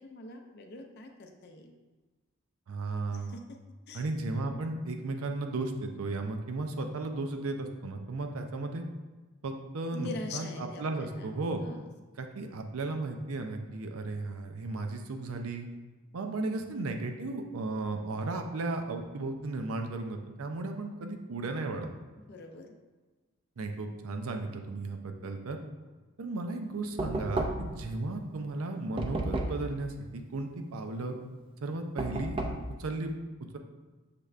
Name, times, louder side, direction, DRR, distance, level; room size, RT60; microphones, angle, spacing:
voice 1, 0.0-1.7 3.1-3.4 3.9-4.1 4.3-4.7 9.9-11.8 16.2-16.8 22.3-22.7, left 2 dB, 50° left, 4 dB, 0.4 m, -44 dB
voice 2, 2.7-3.4 3.9-8.8 9.4-11.6 12.2-15.7 16.1-21.9 23.6-25.6 26.2-31.2 31.6-32.4 32.8-33.1, right 2 dB, 80° right, 5 dB, 0.5 m, -35 dB
Knock, 27.0-27.8 29.0-29.7 32.0-32.7, right 2 dB, 25° right, 0.3 m, -32 dB
6.7 x 3.2 x 2.4 m, 1.3 s
head